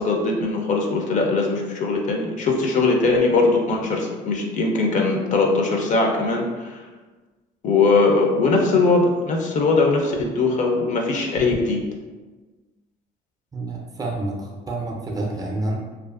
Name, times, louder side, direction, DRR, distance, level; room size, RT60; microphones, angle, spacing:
voice 1, 0.0-6.8 7.6-11.8, left 3 dB, 45° left, 1 dB, 0.5 m, -20 dB
voice 2, 13.5-15.8, right 2 dB, 20° right, -1 dB, 0.5 m, -28 dB
2.5 x 2.4 x 2.4 m, 1.3 s
cardioid pair, 110°, 17 cm